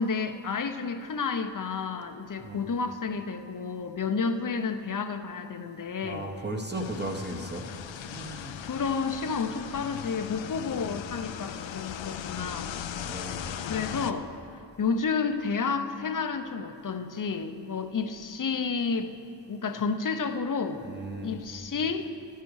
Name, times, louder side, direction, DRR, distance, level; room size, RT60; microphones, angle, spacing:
voice 1, 0.0-6.2 8.6-12.9 13.2-13.4 13.7-14.3 14.8-19.2 19.5-20.8 21.2-22.1, left 5 dB, 45° left, 8 dB, 0.7 m, -31 dB
voice 2, 6.0-7.6 8.1-8.6 13.0-13.7 20.8-21.4, right 1 dB, 25° right, 2 dB, 1.0 m, -36 dB
sound 1, 6.7-14.1, left 9 dB, 80° left, 0.6 m, -38 dB
12.5 x 10.0 x 4.8 m, 2.6 s
wide cardioid pair, 85°, 45 cm